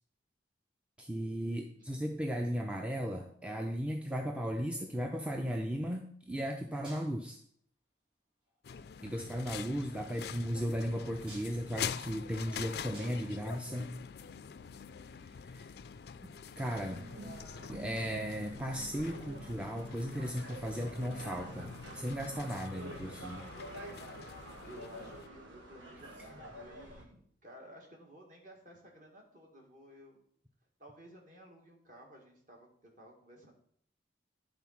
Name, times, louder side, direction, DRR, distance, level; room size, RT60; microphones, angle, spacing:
voice 1, 1.0-7.4 9.0-13.9 15.5-15.7 16.2-16.3 16.6-17.1 17.7-23.4, equal, 5° right, 2 dB, 0.5 m, -36 dB
sound 1, 4.6-5.2 6.4-6.5 6.8-7.5 8.4-8.9 11.0-14.4 15.7-15.8, equal, 25° right, 3.5 m, -56 dB
sound 2, 8.6-25.3, left 7 dB, 55° left, 0.3 m, -45 dB
sound 3, 16.8-27.0, right 1 dB, 80° right, 1.6 m, -48 dB
voice 2, 24.6-30.2 30.8-32.7 33.0-33.5, right 1 dB, 45° right, -1 dB, 1.9 m, -55 dB
10.5 x 3.8 x 5.8 m, 0.63 s
head